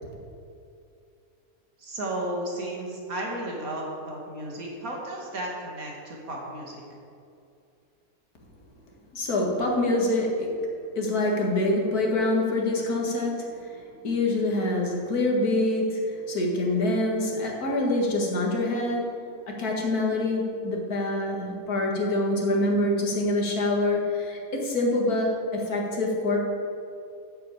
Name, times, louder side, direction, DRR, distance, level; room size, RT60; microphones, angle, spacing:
voice 1, 1.8-6.8, right 1 dB, 70° right, -2 dB, 2.6 m, -34 dB
voice 2, 9.1-10.6 11.0-19.1 19.6-26.4, left 2 dB, 85° left, -1 dB, 2.3 m, -25 dB
8.4 x 7.6 x 8.4 m, 2.5 s
omnidirectional pair, 1.6 m